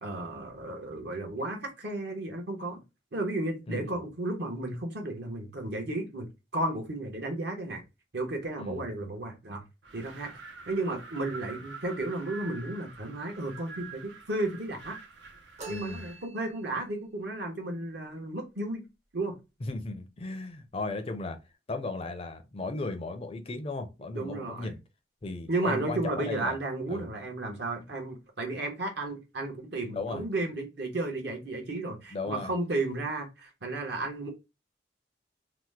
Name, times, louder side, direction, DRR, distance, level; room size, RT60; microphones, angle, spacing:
voice 1, 0.0-2.8 3.1-7.8 8.1-9.6 9.9-10.3 10.7-15.0 15.7-18.8 19.1-19.4 24.1-24.7 25.5-34.3, right 2 dB, 65° right, 1.0 m, -33 dB
Wind, 9.8-16.3, right 4 dB, 85° right, 0.7 m, -47 dB
sound 1, 15.6-16.8, right 3 dB, 40° right, 0.6 m, -46 dB
voice 2, 15.7-16.0 19.6-21.4 21.7-24.8 25.2-26.6 26.9-27.1 29.9-30.2 32.1-32.5, left 2 dB, 30° left, 0.4 m, -36 dB
2.9 x 2.1 x 3.2 m
head